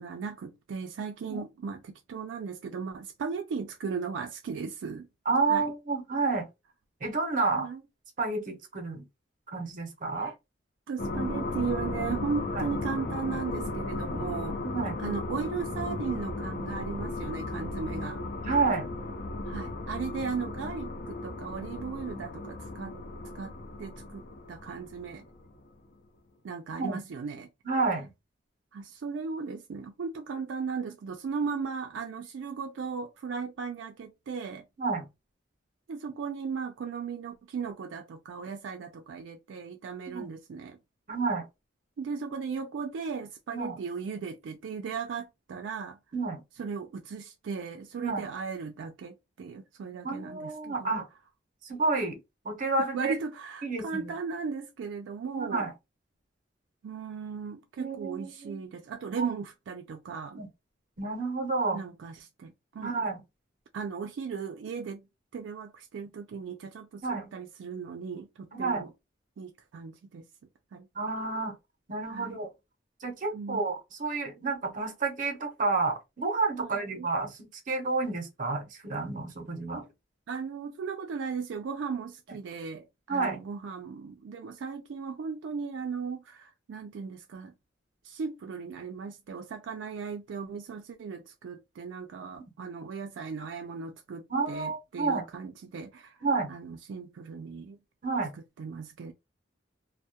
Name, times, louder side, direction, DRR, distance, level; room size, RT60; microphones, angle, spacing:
voice 1, 0.0-5.1 5.5-5.7 7.6-7.8 10.1-10.3 10.9-14.6 15.0-18.2 19.4-22.9 23.3-24.2 24.5-25.3 26.4-27.5 28.7-34.6 35.9-40.8 42.0-46.0 46.6-50.9 52.8-55.7 56.8-60.5 61.7-62.9 63.7-65.0 65.3-68.9 69.4-70.3 70.7-70.9 72.1-72.4 73.3-73.7 76.6-77.1 79.7-79.9 80.3-87.5 88.0-96.2 96.5-97.8 98.6-99.1, right 5 dB, 80° right, 0.3 m, -37 dB
voice 2, 5.3-6.5 7.0-7.7 8.2-9.0 9.5-10.3 12.5-12.7 14.6-15.0 18.4-18.9 26.8-27.0 27.6-28.1 34.8-35.0 40.1-40.3 41.1-41.4 43.5-43.8 46.1-46.4 48.0-48.2 50.0-51.1 51.6-52.2 52.4-53.2 53.6-54.1 55.3-55.7 57.8-58.6 59.2-59.3 60.4-60.5 61.0-61.8 62.8-63.2 67.0-67.3 68.5-68.9 71.0-71.5 71.9-72.5 73.0-79.8 83.1-83.4 94.3-95.2 96.2-96.5 98.0-98.3, right 3 dB, 45° right, 0.6 m, -30 dB
sound 1, 11.0-25.7, left 2 dB, 50° left, 0.5 m, -35 dB
2.2 x 2.0 x 2.7 m
head